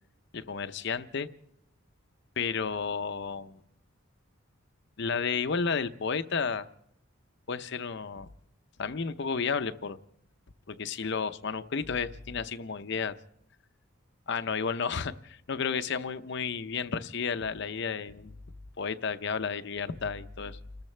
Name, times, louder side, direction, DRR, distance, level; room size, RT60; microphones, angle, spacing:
voice 1, 0.3-1.3 2.4-3.6 5.0-6.7 7.5-8.3 8.8-10.0 10.7-13.1 14.3-18.3 18.8-20.6, left 5 dB, 55° left, 11 dB, 0.7 m, -32 dB
29.5 x 14.0 x 3.3 m, 0.76 s
head